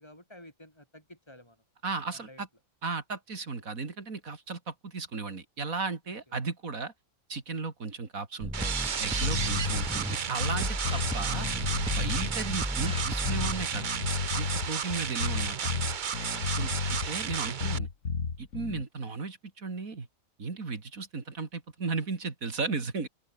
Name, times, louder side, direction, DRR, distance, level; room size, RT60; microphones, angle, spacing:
voice 1, 0.0-1.6 2.1-2.4 6.3-6.4 14.9-15.0 16.5-16.8, left 1 dB, 20° left, 7.3 m, -53 dB
voice 2, 1.8-2.5 2.8-6.9 7.3-11.5 12.0-13.9 14.3-15.7 16.6-17.9 18.4-20.1 20.4-23.1, right 4 dB, 85° right, 3.2 m, -35 dB
sound 1, 8.4-10.2 10.6-13.7, equal, 5° right, 2.2 m, -35 dB
sound 2, 8.5-17.8, right 7 dB, 40° right, 0.8 m, -33 dB
sound 3, 9.2-18.8, left 5 dB, 80° left, 2.5 m, -32 dB
open air
omnidirectional pair, 1.4 m